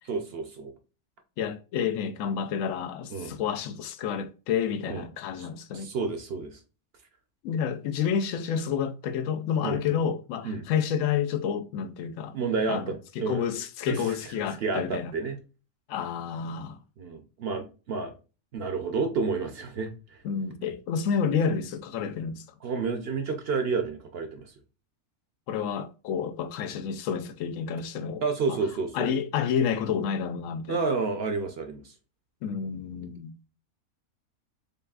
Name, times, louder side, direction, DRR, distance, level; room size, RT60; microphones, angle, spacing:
voice 1, 0.1-0.7 3.1-3.4 4.9-5.0 5.4-5.5 5.7-6.6 9.6-9.8 10.4-10.7 12.3-13.5 13.9-14.2 14.6-15.4 17.0-18.1 18.5-20.2 22.6-24.5 28.2-29.1 30.7-31.9, right 4 dB, 55° right, 0.8 m, -30 dB
voice 2, 1.4-5.9 7.4-12.4 12.7-15.1 15.9-16.8 20.2-22.4 25.5-28.2 28.5-28.6 28.9-30.8 32.4-33.3, left 7 dB, 70° left, 0.9 m, -29 dB
4.1 x 3.3 x 2.3 m
omnidirectional pair, 1.5 m